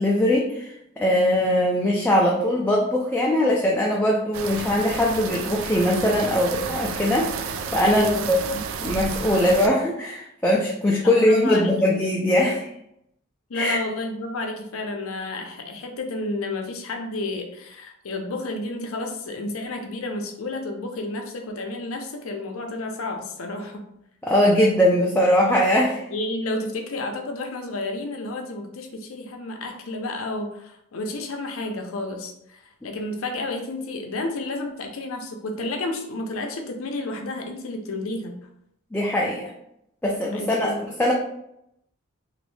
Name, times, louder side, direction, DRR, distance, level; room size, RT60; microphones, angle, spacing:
voice 1, 0.0-7.5 7.7-8.4 8.8-12.7 13.5-13.8 24.2-26.0 38.9-39.5 40.0-40.7 41.0-41.1, left 1 dB, 10° left, -3 dB, 0.3 m, -21 dB
sound 1, 4.3-9.7, right 5 dB, 75° right, 0.3 m, -31 dB
voice 2, 7.8-8.6 11.0-11.7 13.5-23.8 26.1-38.4 40.3-40.8, left 2 dB, 85° left, 4 dB, 0.6 m, -31 dB
3.1 x 2.6 x 3.1 m, 0.77 s
head